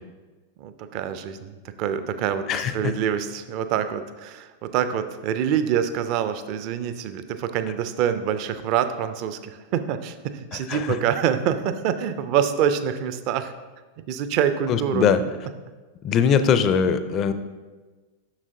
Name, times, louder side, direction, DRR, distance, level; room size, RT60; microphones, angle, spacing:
voice 1, 0.6-13.5 14.1-15.1, right 9 dB, 45° right, 11 dB, 0.4 m, -26 dB
voice 2, 2.5-2.9 10.5-11.0 14.7-15.2 16.0-17.3, left 7 dB, 35° left, 11 dB, 0.4 m, -21 dB
7.1 x 6.2 x 2.6 m, 1.3 s
figure-of-eight pair, 90°, 0 cm